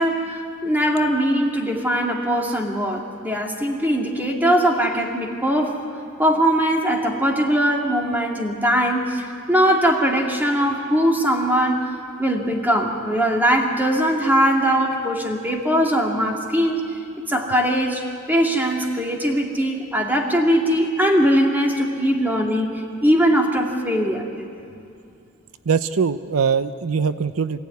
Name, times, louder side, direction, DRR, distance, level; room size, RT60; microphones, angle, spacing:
voice 1, 0.0-5.8 6.2-11.9 12.2-16.9 17.3-24.3, equal, 10° right, 0 dB, 2.4 m, -20 dB
voice 2, 25.7-27.6, right 6 dB, 85° right, 12 dB, 0.6 m, -22 dB
26.5 x 16.5 x 9.5 m, 2.5 s
head